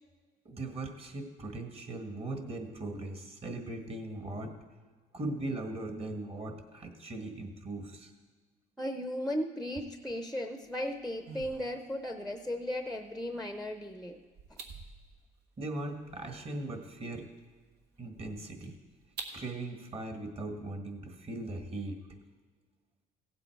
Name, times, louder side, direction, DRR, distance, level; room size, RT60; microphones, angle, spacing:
voice 1, 0.4-4.6 5.1-8.1 15.6-17.3 18.0-18.7 19.3-22.0, right 2 dB, 35° right, 5 dB, 1.6 m, -39 dB
voice 2, 8.8-14.2, equal, ahead, 6 dB, 0.6 m, -36 dB
sound 1, 10.6-19.4, right 4 dB, 80° right, 1.4 m, -51 dB
16.5 x 7.8 x 4.6 m, 1.4 s
cardioid pair, 110°, 17 cm